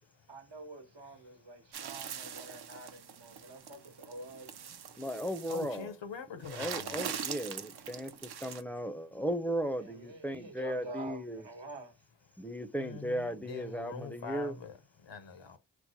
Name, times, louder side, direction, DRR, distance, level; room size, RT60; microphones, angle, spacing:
voice 1, 0.3-4.5 9.8-11.9, right 2 dB, 75° right, 1.1 m, -47 dB
voice 2, 1.0-1.7 3.4-3.5 4.9-5.0 5.5-7.1 12.7-15.6, left 5 dB, 85° left, 0.8 m, -45 dB
sound 1, 1.7-5.8 6.4-8.6, right 8 dB, 60° right, 0.5 m, -42 dB
voice 3, 5.0-5.9 6.5-11.5 12.4-14.5, equal, 5° left, 0.5 m, -36 dB
4.5 x 2.1 x 2.7 m
wide cardioid pair, 60°, 43 cm